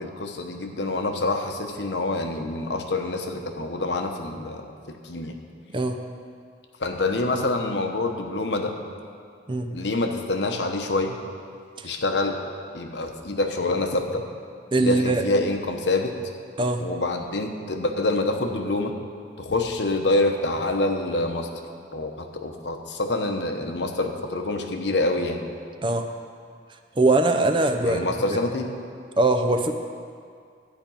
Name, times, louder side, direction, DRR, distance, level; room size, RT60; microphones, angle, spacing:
voice 1, 0.0-5.4 6.8-8.8 9.7-11.2 11.8-12.4 12.7-14.2 14.8-16.1 16.8-18.9 19.4-21.5 21.9-25.4 27.8-28.7, left 2 dB, 80° left, 4 dB, 1.0 m, -26 dB
voice 2, 14.7-15.2 16.6-16.8 25.8-26.1 27.0-28.0 29.2-29.7, right 2 dB, 30° right, 6 dB, 0.6 m, -21 dB
12.0 x 5.2 x 8.8 m, 2.2 s
head